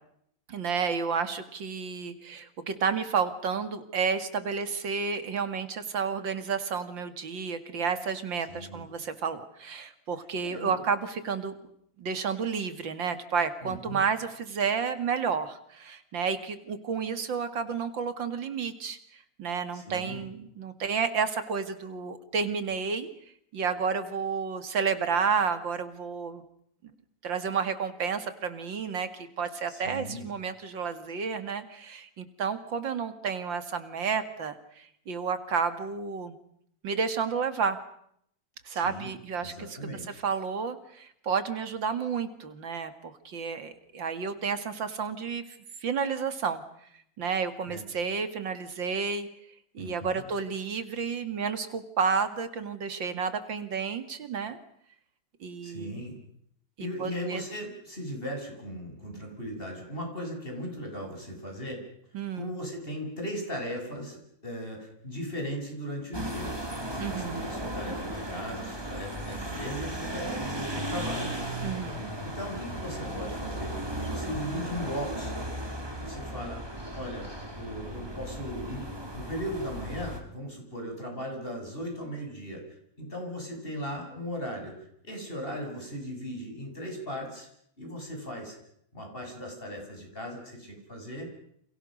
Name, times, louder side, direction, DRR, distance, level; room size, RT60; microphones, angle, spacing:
voice 1, 0.5-11.5 12.0-19.0 19.4-23.1 23.5-26.4 27.2-36.4 36.8-37.8 38.6-45.4 45.8-46.6 47.2-49.3 49.7-54.6 55.4-56.0 56.8-57.4 62.1-62.5 67.0-67.5 71.6-72.1, right 6 dB, 80° right, 10 dB, 2.8 m, -31 dB
voice 2, 8.5-8.9 10.4-10.8 13.6-14.0 19.7-20.2 29.7-30.2 38.7-39.1 39.4-40.2 47.7-47.8 49.8-50.2 55.6-56.2 56.8-61.8 62.3-66.5 66.9-71.4 72.2-73.7 74.0-75.4 76.0-77.3 77.6-82.6 83.0-87.5 87.8-88.6 88.9-91.3, equal, 30° left, 2 dB, 7.8 m, -37 dB
sound 1, 66.1-80.2, right 1 dB, 10° right, 3.5 m, -36 dB
29.5 x 28.0 x 6.5 m, 0.72 s
omnidirectional pair, 2.0 m